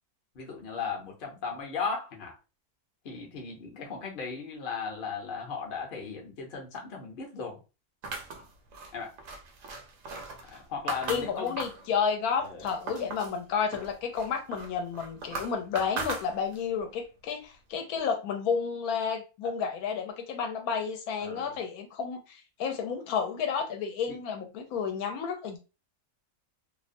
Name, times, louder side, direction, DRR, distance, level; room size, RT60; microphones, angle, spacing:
voice 1, 0.3-2.3 3.0-7.6 8.9-9.1 10.4-11.6 12.4-12.7 21.2-21.6 24.1-24.2, left 5 dB, 50° left, 0.7 m, -37 dB
sound 1, 8.0-11.9 12.3-13.4 13.7-16.7, right 3 dB, 70° right, 0.9 m, -39 dB
voice 2, 11.1-25.6, left 6 dB, 80° left, 1.0 m, -31 dB
2.7 x 2.1 x 2.5 m
omnidirectional pair, 1.6 m